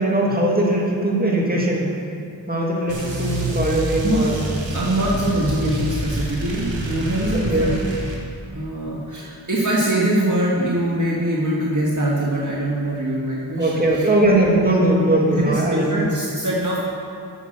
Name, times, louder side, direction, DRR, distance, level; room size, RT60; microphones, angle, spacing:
voice 1, 0.0-1.9 2.5-4.4 7.3-7.7 13.6-16.1, right 1 dB, 20° right, -3 dB, 2.3 m, -20 dB
sound 1, 2.9-8.2, right 1 dB, 75° right, 1.9 m, -27 dB
voice 2, 4.7-7.8 8.5-14.3 15.3-16.8, right 1 dB, 40° right, -5 dB, 1.6 m, -23 dB
8.1 x 7.2 x 7.6 m, 2.4 s
cardioid pair, 50°, 45 cm